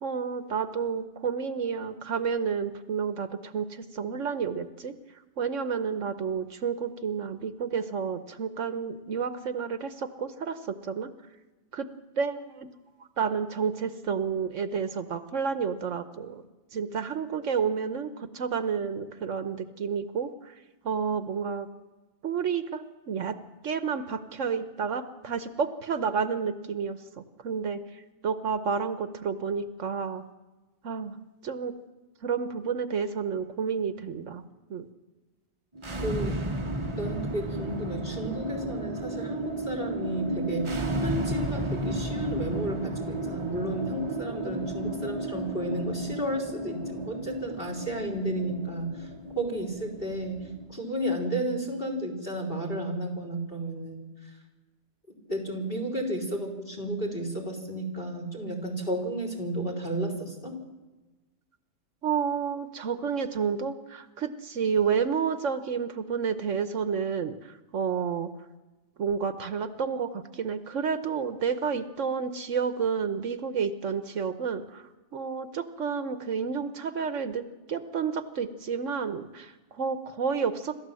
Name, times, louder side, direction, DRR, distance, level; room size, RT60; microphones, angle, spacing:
voice 1, 0.0-4.9 5.4-11.1 11.7-11.9 12.2-12.7 13.2-16.4 16.7-20.5 20.8-21.7 22.2-23.4 23.6-27.0 27.4-30.2 30.8-31.7 32.2-34.4 34.7-34.9 62.0-68.3 69.0-77.4 77.7-80.8, right 6 dB, 70° right, 11 dB, 1.3 m, -30 dB
sound 1, 35.7-50.7, right 1 dB, 25° right, 1.0 m, -33 dB
voice 2, 36.0-40.7 41.0-49.1 49.4-50.4 50.7-54.1 55.3-60.6, right 1 dB, 40° left, 3 dB, 4.5 m, -32 dB
26.5 x 13.5 x 7.6 m, 1.2 s
omnidirectional pair, 1.4 m